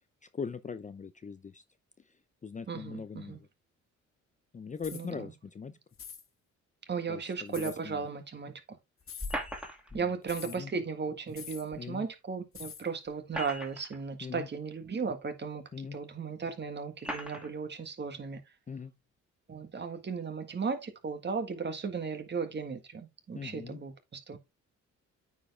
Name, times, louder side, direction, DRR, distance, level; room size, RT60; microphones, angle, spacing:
voice 1, 0.3-1.6 2.0-2.1 2.4-3.5 4.5-5.8 7.1-8.0 9.9-10.1 10.4-10.7 11.8-12.1 14.2-14.5 15.7-16.0 18.7-18.9 23.3-23.8, left 5 dB, 25° left, 0.6 m, -41 dB
voice 2, 2.7-3.4 4.9-5.3 6.9-8.8 9.9-15.6 15.9-18.4 19.5-24.4, right 5 dB, 35° right, 1.7 m, -36 dB
sound 1, 4.8-5.1 5.9-6.2 7.5-7.8 9.0-9.4 10.3-10.6 11.3-11.7 12.5-12.9, left 7 dB, 45° left, 1.7 m, -45 dB
sound 2, 9.2-10.0 11.7-11.8 13.1-14.0 14.9-15.0 15.9-16.0 17.0-17.5, equal, 5° right, 2.2 m, -38 dB
9.1 x 4.7 x 3.4 m
cardioid pair, 90°, 30 cm